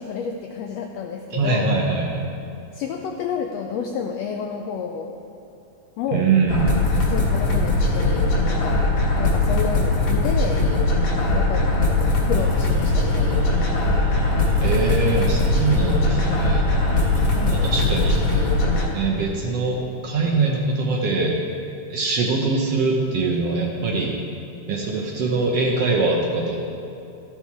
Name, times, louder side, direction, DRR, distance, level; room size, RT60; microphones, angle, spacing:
voice 1, 0.0-1.7 2.7-5.2 6.0-6.3 7.1-8.8 9.2-10.6 11.3-13.3 17.2-17.8, left 6 dB, 85° left, 3 dB, 1.4 m, -30 dB
voice 2, 1.3-2.3 6.1-6.7 14.6-16.7 17.6-18.5 18.9-19.8 20.0-21.3 21.9-24.2 24.7-26.6, right 3 dB, 70° right, -1 dB, 1.6 m, -22 dB
sound 1, 6.5-18.9, left 2 dB, 55° left, 2.1 m, -20 dB
sound 2, 12.3-18.3, right 2 dB, 85° right, 2.5 m, -35 dB
13.0 x 5.7 x 4.6 m, 2.8 s
omnidirectional pair, 3.4 m